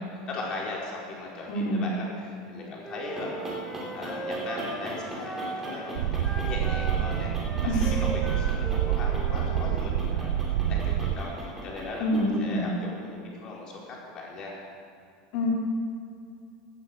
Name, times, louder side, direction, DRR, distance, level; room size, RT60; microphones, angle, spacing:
voice 1, 0.0-3.7 3.9-7.3 7.6-14.6, left 2 dB, 35° left, -3 dB, 4.6 m, -38 dB
voice 2, 1.5-1.9 7.6-8.0 12.0-12.7 15.3-15.5, left 1 dB, 60° left, -2 dB, 4.1 m, -26 dB
Wind instrument woodwind instrument, 2.8-5.8 6.2-9.6, right 2 dB, ahead, 2.8 m, -38 dB
sound 1, 2.9-12.5, right 1 dB, 15° right, 3.9 m, -40 dB
sound 2, 5.9-11.2, right 10 dB, 85° right, 0.6 m, -27 dB
17.0 x 9.9 x 7.9 m, 2.4 s
supercardioid pair, 150°, 2 cm